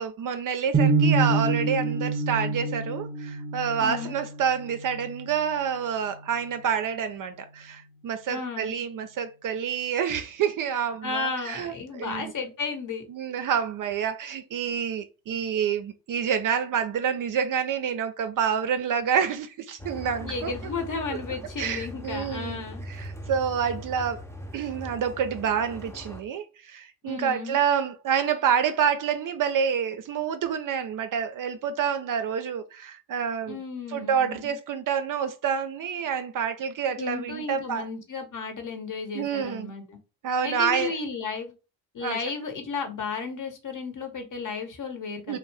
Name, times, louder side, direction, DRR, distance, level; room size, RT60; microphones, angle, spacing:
voice 1, 0.0-12.3 13.1-20.5 21.6-24.2 24.5-33.6 33.9-37.8 39.1-39.7 40.2-40.9 42.0-42.2 45.3-45.4, right 7 dB, 45° right, 0.4 m, -28 dB
sound 1, 0.7-6.8, right 3 dB, 25° right, 0.9 m, -27 dB
voice 2, 3.8-4.2 8.3-8.7 11.0-13.0 20.2-22.8 27.0-27.6 33.5-34.5 37.0-40.0 40.4-41.5 41.9-45.4, left 4 dB, 40° left, 0.9 m, -33 dB
sound 2, 19.8-26.2, equal, 5° left, 0.5 m, -40 dB
2.5 x 2.1 x 3.2 m
hypercardioid pair, 45°, 47 cm